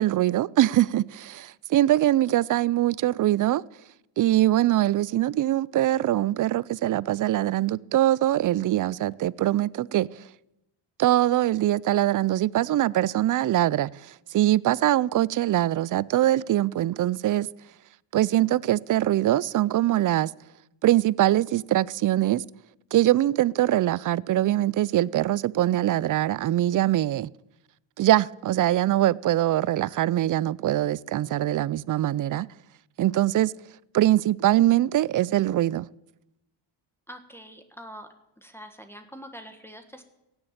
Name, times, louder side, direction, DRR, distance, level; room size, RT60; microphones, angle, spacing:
voice 1, 0.0-3.6 4.2-10.1 11.0-13.9 14.3-17.5 18.1-20.3 20.8-22.4 22.9-27.3 28.0-32.5 33.0-33.5 33.9-35.9, right 14 dB, 45° right, 0.4 m, -23 dB
voice 2, 37.1-38.1 38.4-40.0, equal, 5° left, 1.5 m, -44 dB
16.5 x 7.2 x 9.1 m
cardioid pair, 85°, 48 cm